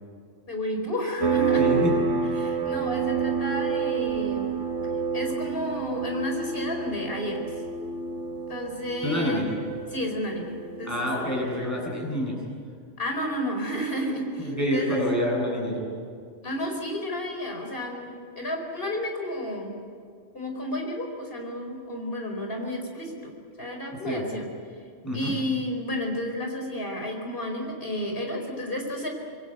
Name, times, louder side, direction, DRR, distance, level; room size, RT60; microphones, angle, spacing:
voice 1, 0.5-1.7 2.4-4.5 5.1-7.5 8.5-9.5 9.9-11.1 13.0-15.1 16.4-19.8 20.3-23.3 23.6-24.4 25.1-29.1, left 1 dB, 50° left, 2 dB, 4.8 m, -31 dB
sound 1, 1.2-11.5, right 5 dB, 75° right, 2.0 m, -28 dB
voice 2, 1.6-2.1 9.0-9.5 10.8-12.4 14.4-15.9 24.1-24.2 25.0-25.3, equal, 15° left, -3 dB, 8.1 m, -27 dB
26.0 x 22.0 x 8.1 m, 2.2 s
omnidirectional pair, 1.3 m